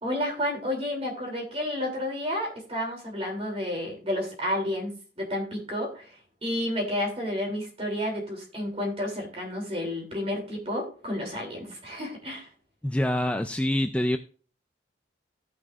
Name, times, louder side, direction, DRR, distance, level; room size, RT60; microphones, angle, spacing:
voice 1, 0.0-6.1 6.4-12.5, left 1 dB, 35° right, 0 dB, 2.9 m, -31 dB
voice 2, 12.8-14.2, left 1 dB, 5° left, 7 dB, 0.3 m, -25 dB
16.5 x 6.1 x 2.4 m, 0.40 s
head